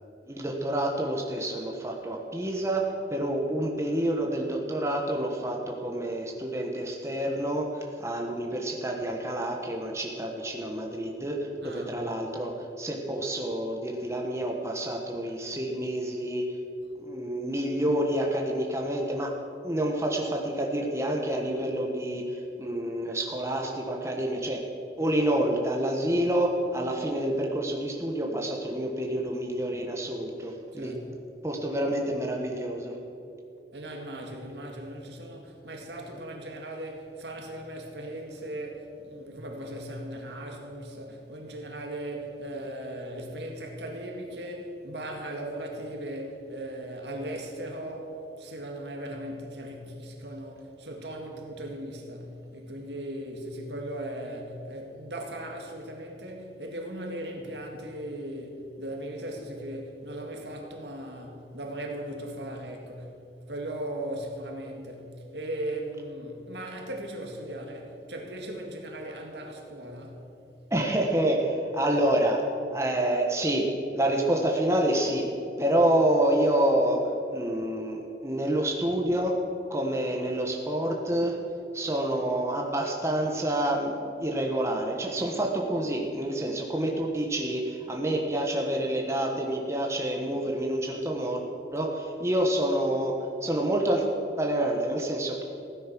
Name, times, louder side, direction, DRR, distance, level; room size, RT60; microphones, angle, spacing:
voice 1, 0.3-16.4 17.0-19.3 19.6-24.6 25.0-30.9 31.4-32.9 70.7-75.3 75.6-77.0 77.3-79.3 79.7-81.4 81.7-91.4 91.7-93.1 93.4-94.1 94.4-95.4, right 1 dB, 15° right, 1.2 m, -28 dB
voice 2, 11.6-12.0 30.7-31.0 33.7-63.2 63.5-70.3, right 1 dB, 80° right, 2.1 m, -38 dB
16.0 x 9.6 x 6.2 m
head